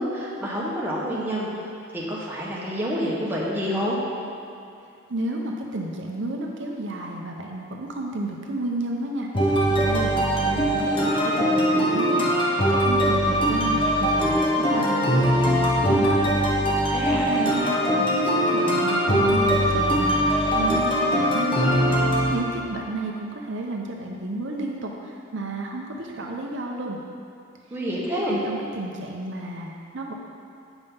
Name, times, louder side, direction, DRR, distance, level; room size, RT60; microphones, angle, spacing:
voice 1, 0.0-1.5 1.9-4.0 16.9-17.3 27.7-28.4, equal, 10° right, -7 dB, 1.3 m, -28 dB
voice 2, 5.1-12.3 12.7-16.2 16.8-17.0 17.3-27.0 28.3-30.1, right 2 dB, 65° right, 0 dB, 0.7 m, -32 dB
sound 1, 9.3-22.3, equal, 25° left, 0.9 m, -21 dB
8.1 x 5.3 x 5.6 m, 2.6 s
head